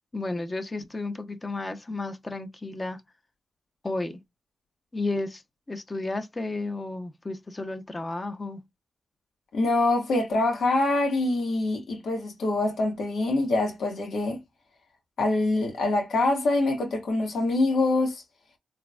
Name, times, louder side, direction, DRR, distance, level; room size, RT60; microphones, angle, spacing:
voice 1, 0.1-3.0 3.8-4.2 4.9-5.4 5.7-8.6, left 2 dB, 30° left, 0.9 m, -32 dB
voice 2, 9.5-14.4 15.2-18.2, left 2 dB, 85° left, 1.7 m, -25 dB
3.8 x 3.5 x 2.3 m
cardioid pair, 60°, 0 cm